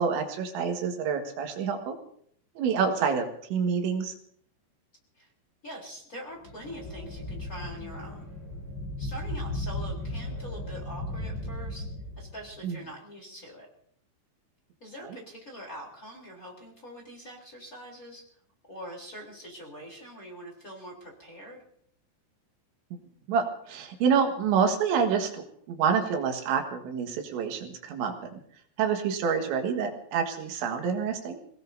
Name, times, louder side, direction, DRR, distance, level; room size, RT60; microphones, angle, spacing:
voice 1, 0.0-2.0 2.6-4.1 12.6-12.8 15.0-15.2 23.3-28.4 28.8-31.4, right 6 dB, 85° right, 4 dB, 4.0 m, -27 dB
voice 2, 5.6-8.3 9.0-11.9 12.2-13.7 14.8-18.3 18.7-21.6, equal, 20° left, -2 dB, 3.5 m, -43 dB
sound 1, 6.4-12.6, left 1 dB, 60° left, 10.0 m, -36 dB
27.0 x 18.5 x 2.7 m, 0.64 s
omnidirectional pair, 5.1 m